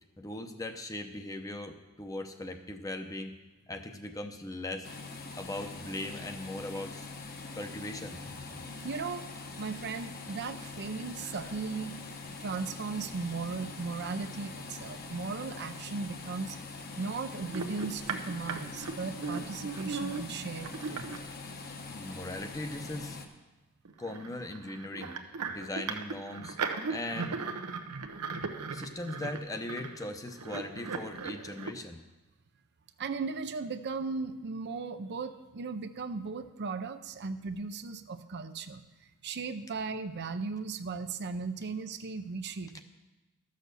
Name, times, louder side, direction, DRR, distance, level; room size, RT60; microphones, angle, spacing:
voice 1, 0.2-3.3 3.7-4.9 5.4-7.1 7.5-8.7 11.2-11.4 21.6-23.2 24.0-25.1 25.5-26.6 26.9-27.4 28.7-32.0, left 1 dB, 15° left, 6 dB, 0.7 m, -39 dB
sound 1, 4.8-23.3, left 3 dB, 45° left, 1.0 m, -43 dB
voice 2, 8.8-9.3 9.6-11.9 12.4-16.6 17.0-21.1 33.0-38.8 39.2-42.8, right 4 dB, 50° right, 10 dB, 0.5 m, -37 dB
sound 2, 17.5-21.2 22.5-22.6 23.0-23.1 23.9-31.7, right 4 dB, 85° right, 0.9 m, -38 dB
13.5 x 6.5 x 6.7 m, 1.1 s
head